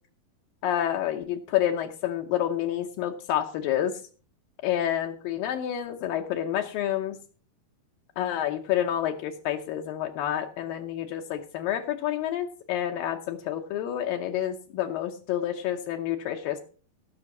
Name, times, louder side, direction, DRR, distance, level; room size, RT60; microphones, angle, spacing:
voice 1, 0.6-3.9 4.6-7.2 8.2-16.6, left 11 dB, 80° left, 3 dB, 2.5 m, -29 dB
15.5 x 6.3 x 5.9 m, 0.41 s
omnidirectional pair, 4.1 m